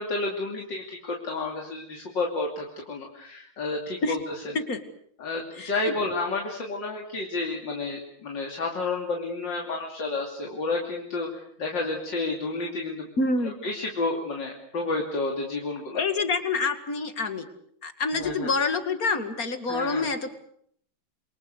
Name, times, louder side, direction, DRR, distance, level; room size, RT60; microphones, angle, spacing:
voice 1, 0.0-4.2 5.2-13.1 13.6-16.0 18.1-18.5 19.7-20.1, left 3 dB, 80° left, 0 dB, 3.6 m, -30 dB
voice 2, 5.6-5.9 13.2-13.5 15.9-17.5 17.8-20.3, left 3 dB, 50° left, 8 dB, 2.7 m, -27 dB
29.0 x 23.5 x 6.7 m, 0.67 s
omnidirectional pair, 1.9 m